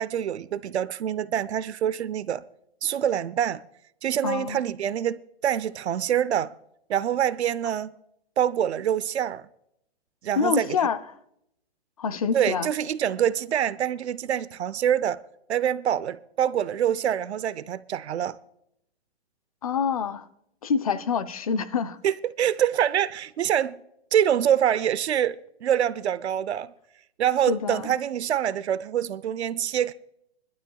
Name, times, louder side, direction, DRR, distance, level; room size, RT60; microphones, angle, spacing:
voice 1, 0.0-2.4 2.8-3.6 4.0-6.5 6.9-7.9 8.4-9.4 10.2-10.7 12.3-15.2 15.5-18.4 22.0-23.8 24.1-26.7 27.2-29.9, right 10 dB, 85° right, 0.7 m, -25 dB
voice 2, 4.2-4.6 10.4-11.0 12.0-12.7 19.6-20.3 20.6-22.0 27.5-27.9, left 6 dB, 35° left, 0.6 m, -26 dB
24.5 x 12.0 x 2.3 m
hypercardioid pair, 175°, 32 cm